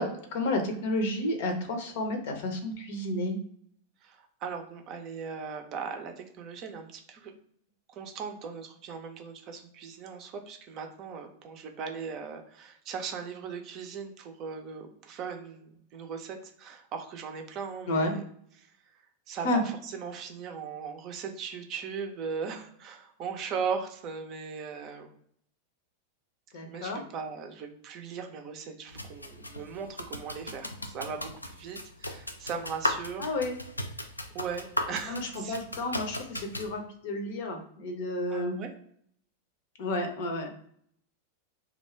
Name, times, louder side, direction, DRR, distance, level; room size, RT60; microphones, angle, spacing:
voice 1, 0.0-3.4 17.9-18.1 19.4-19.6 26.5-27.0 33.2-33.6 35.1-38.6 39.8-40.5, left 1 dB, 55° left, 4 dB, 0.7 m, -31 dB
voice 2, 4.0-7.3 7.9-18.2 18.6-25.1 26.6-33.3 34.3-35.6 38.3-38.7, right 6 dB, 35° right, 4 dB, 0.5 m, -38 dB
sound 1, 28.9-36.7, left 1 dB, 85° left, 0.3 m, -37 dB
2.4 x 2.1 x 3.2 m, 0.64 s
figure-of-eight pair, 90°, 0 cm